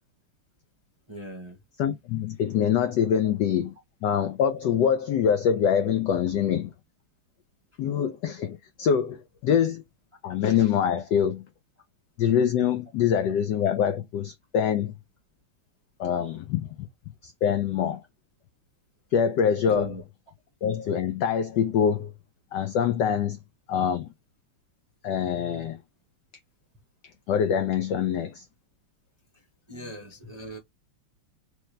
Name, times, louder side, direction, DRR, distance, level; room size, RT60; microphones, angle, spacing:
voice 1, 1.1-1.6 19.7-20.0 25.6-25.7 29.3-29.4 29.7-30.6, equal, 25° right, 0.6 m, -38 dB
voice 2, 1.8-3.7 4.0-6.7 7.8-9.8 10.2-11.4 12.2-14.9 16.0-16.7 17.2-18.0 19.1-19.9 20.6-22.1 22.5-23.4 23.7-24.1 25.0-25.8 27.3-28.4, left 8 dB, 80° left, 0.9 m, -24 dB
3.3 x 3.2 x 3.2 m
omnidirectional pair, 2.4 m